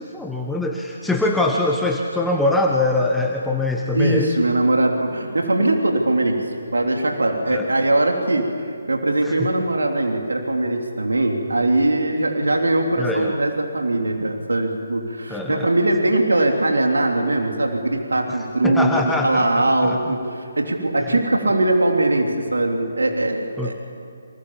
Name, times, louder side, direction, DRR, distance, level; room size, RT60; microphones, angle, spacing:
voice 1, 0.0-4.3 7.5-7.7 9.2-9.5 13.0-13.3 15.3-15.7 18.3-18.4 18.6-20.0 21.1-21.2 23.6-23.7, left 2 dB, 5° left, 0 dB, 1.4 m, -23 dB
voice 2, 3.9-6.4 6.7-18.9 19.2-23.7, right 2 dB, 70° right, 2 dB, 3.3 m, -21 dB
30.0 x 27.0 x 7.4 m, 2.6 s
figure-of-eight pair, 140°, 0 cm